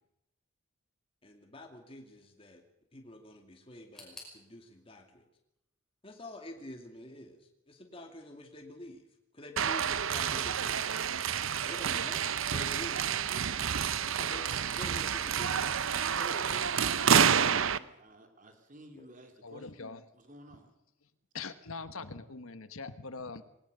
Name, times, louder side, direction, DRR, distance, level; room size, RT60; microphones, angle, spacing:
voice 1, 1.2-2.6 2.9-5.2 6.0-9.0 9.3-10.9 11.7-13.0 14.1-15.7 18.9-19.1, left 1 dB, 25° left, 3 dB, 2.4 m, -48 dB
sound 1, 3.9-6.8 7.1-7.9 8.2-8.3 9.1-9.2, left 1 dB, ahead, 5.6 m, -56 dB
sound 2, 9.6-17.8, right 7 dB, 65° right, 0.7 m, -29 dB
voice 2, 16.1-19.7 20.1-20.7, right 1 dB, 35° right, 5 dB, 3.2 m, -50 dB
voice 3, 19.4-20.0 21.3-23.4, left 4 dB, 75° left, 12 dB, 1.2 m, -42 dB
21.0 x 18.5 x 6.7 m, 0.85 s
head